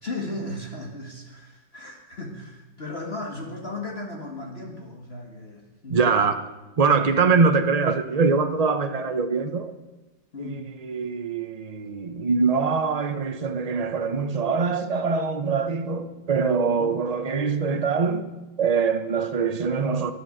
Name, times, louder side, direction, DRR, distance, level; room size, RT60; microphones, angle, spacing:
voice 1, 0.0-6.0 10.3-10.7 16.8-16.9, left 2 dB, 35° left, 0 dB, 1.9 m, -36 dB
voice 2, 5.9-6.4 6.8-9.7 10.4-18.3 18.6-20.1, right 5 dB, 55° right, 8 dB, 0.4 m, -23 dB
12.5 x 11.5 x 7.8 m, 1.1 s
omnidirectional pair, 2.0 m